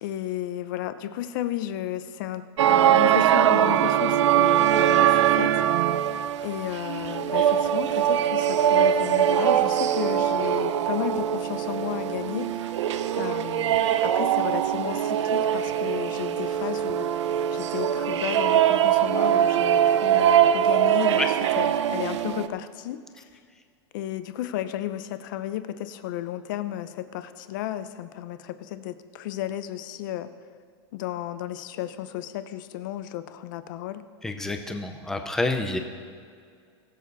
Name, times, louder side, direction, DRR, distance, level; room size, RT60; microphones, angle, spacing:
voice 1, 0.0-5.6 6.4-12.8 13.2-17.1 17.5-23.2 23.9-30.3 30.9-34.0, left 12 dB, 45° left, 12 dB, 0.7 m, -33 dB
sound 1, 2.6-22.5, right 10 dB, 85° right, 0.6 m, -22 dB
voice 2, 34.2-35.8, left 2 dB, 5° left, 6 dB, 0.6 m, -28 dB
21.5 x 7.5 x 4.1 m, 2.2 s
supercardioid pair, 170°, 15 cm